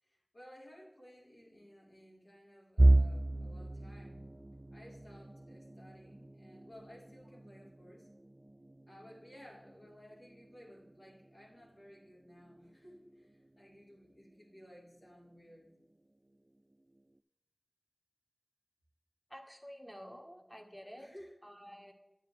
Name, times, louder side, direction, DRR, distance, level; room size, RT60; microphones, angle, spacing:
voice 1, 0.0-4.2 4.7-8.1 8.9-15.7 21.0-21.4, equal, 85° left, -6 dB, 4.0 m, -57 dB
sound 1, 2.8-14.6 15.0-15.3 15.7-15.8 16.7-17.2, right 1 dB, 40° right, 0.3 m, -34 dB
voice 2, 19.3-21.1 21.4-21.9, equal, 10° left, 3 dB, 1.6 m, -50 dB
9.9 x 9.7 x 3.3 m, 0.97 s
wide cardioid pair, 45°, 0 cm